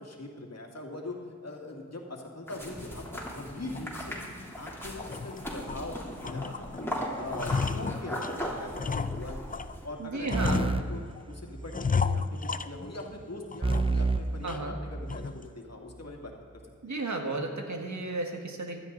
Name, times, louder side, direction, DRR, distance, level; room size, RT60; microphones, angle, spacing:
voice 1, 0.0-6.9 7.2-9.5 9.8-11.0 11.3-16.3 16.8-16.9, left 2 dB, 55° left, 0 dB, 2.3 m, -42 dB
sound 1, 2.5-9.9, equal, 5° left, 3.2 m, -38 dB
sound 2, 3.7-3.9 4.4-4.5 4.9-5.8 6.2-6.9 7.1-9.8 10.3-11.2 11.7-13.2 13.5-14.1 14.5-14.6 15.1-15.5, left 5 dB, 30° left, 0.4 m, -33 dB
voice 2, 10.0-10.6 14.4-14.7 16.8-18.8, right 2 dB, 65° right, 3 dB, 1.7 m, -33 dB
sound 3, 10.3-11.9 13.6-15.4, right 3 dB, 20° right, 0.6 m, -30 dB
16.0 x 12.5 x 4.0 m, 2.1 s
wide cardioid pair, 55°, 31 cm